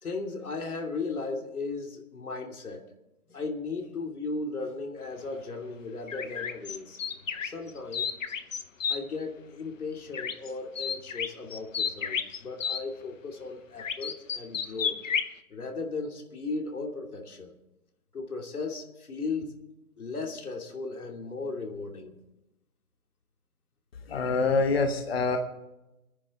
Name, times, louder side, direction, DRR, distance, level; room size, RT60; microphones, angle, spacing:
voice 1, 0.0-2.8 3.3-7.0 7.4-8.3 8.9-15.0 15.5-17.5 18.1-19.5 20.0-22.2, left 3 dB, 90° left, 2 dB, 2.9 m, -36 dB
sound 1, 6.1-9.0 10.1-10.5 10.8-12.8 13.8-15.3, left 7 dB, 60° left, 1.0 m, -31 dB
voice 2, 24.1-25.4, left 4 dB, 45° left, 5 dB, 1.2 m, -25 dB
26.0 x 10.0 x 3.8 m, 0.96 s
hypercardioid pair, 180°, 43 cm